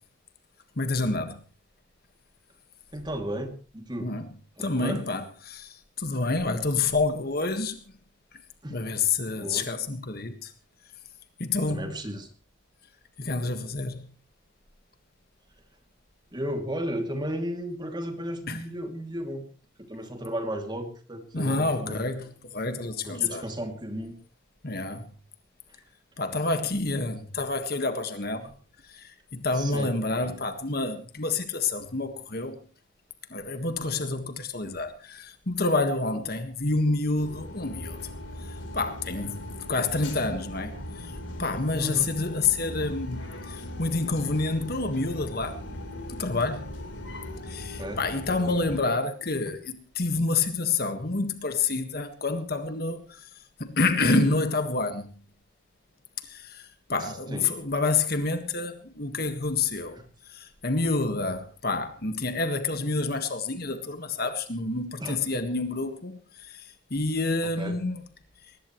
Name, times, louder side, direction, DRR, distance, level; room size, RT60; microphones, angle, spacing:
voice 1, 0.8-1.4 4.0-4.3 4.6-7.8 8.7-10.5 11.4-12.0 13.2-14.1 18.5-18.6 21.3-23.4 24.6-25.1 26.2-28.5 28.8-32.6 33.3-38.0 38.4-45.6 46.1-46.7 47.4-55.1 56.2-68.0 68.4-68.5, left 3 dB, 50° left, 1.7 m, -28 dB
voice 2, 2.9-4.1 4.6-5.1 8.6-8.8 9.4-9.7 11.7-12.3 16.3-19.5 19.9-22.1 23.0-24.2 25.7-25.8 29.5-29.9 30.2-30.4 41.4-41.5 41.8-42.1 47.8-48.0 57.0-57.5 59.9-60.0 65.0-65.2 67.6-67.8, right 1 dB, 25° right, 2.7 m, -34 dB
sound 1, 37.2-48.8, left 1 dB, 80° left, 4.0 m, -39 dB
21.0 x 20.0 x 3.2 m
head